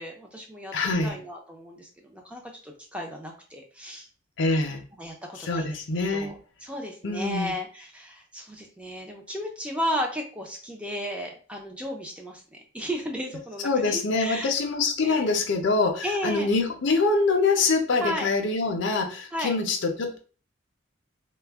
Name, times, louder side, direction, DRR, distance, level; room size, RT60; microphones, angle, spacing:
voice 1, 0.0-4.1 5.0-5.8 6.1-14.5 15.0-15.3 16.0-16.5 18.0-18.3 19.3-19.6, equal, 5° right, 1 dB, 0.4 m, -34 dB
voice 2, 0.7-1.1 4.4-4.8 5.4-6.4 7.0-7.5 13.6-20.2, left 3 dB, 60° left, 4 dB, 0.5 m, -25 dB
2.2 x 2.0 x 3.4 m, 0.38 s
head